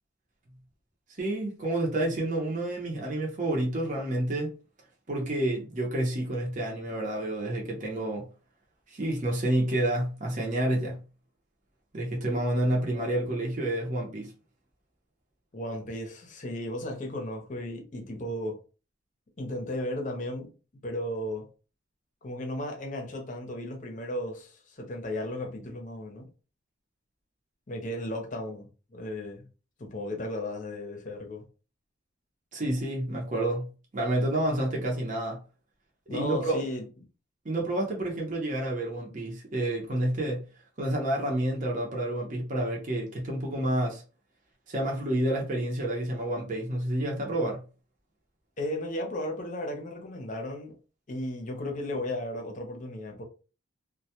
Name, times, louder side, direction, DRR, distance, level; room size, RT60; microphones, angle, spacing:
voice 1, 1.2-4.5 5.1-8.3 8.9-11.0 11.9-14.3 32.5-33.7 33.9-35.4 36.1-36.6 37.4-40.4 40.8-44.0 44.7-47.6, right 1 dB, 40° right, 0.6 m, -29 dB
voice 2, 15.5-18.6 19.4-20.5 20.8-21.5 22.2-26.3 27.7-29.5 29.8-31.5 36.1-36.8 48.6-50.8 51.1-53.2, left 1 dB, 40° left, 0.6 m, -35 dB
2.2 x 2.1 x 2.8 m
head